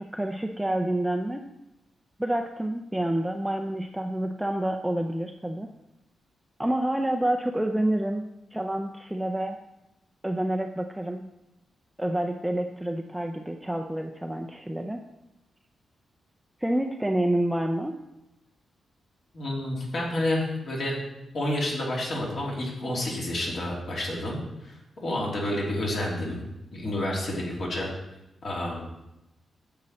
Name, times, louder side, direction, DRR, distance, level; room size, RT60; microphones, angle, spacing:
voice 1, 0.0-1.5 2.2-5.7 6.6-9.6 10.2-11.3 12.0-15.0 16.6-18.0, right 1 dB, 5° right, 3 dB, 0.5 m, -28 dB
voice 2, 19.3-21.0 21.3-24.8 25.0-26.4 26.7-27.9 28.4-28.8, left 1 dB, 50° left, -3 dB, 2.9 m, -29 dB
10.5 x 7.8 x 4.2 m, 0.92 s
wide cardioid pair, 140°, 0 cm